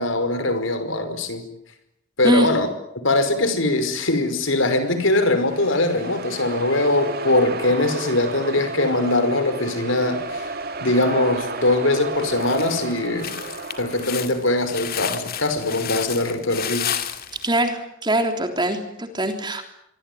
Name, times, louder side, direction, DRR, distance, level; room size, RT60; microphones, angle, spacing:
voice 1, 0.0-1.4 2.2-2.7 3.0-10.5 10.8-13.4 13.8-17.0, left 2 dB, 75° left, 10 dB, 5.3 m, -21 dB
sound 1, 4.7-14.6, right 3 dB, 50° right, 2.6 m, -33 dB
sound 2, 10.6-11.2 11.7-11.8 12.2-17.5, left 9 dB, 50° left, 2.6 m, -32 dB
voice 2, 17.4-19.6, right 1 dB, 25° right, 6 dB, 3.5 m, -22 dB
26.5 x 23.5 x 9.4 m, 0.79 s
head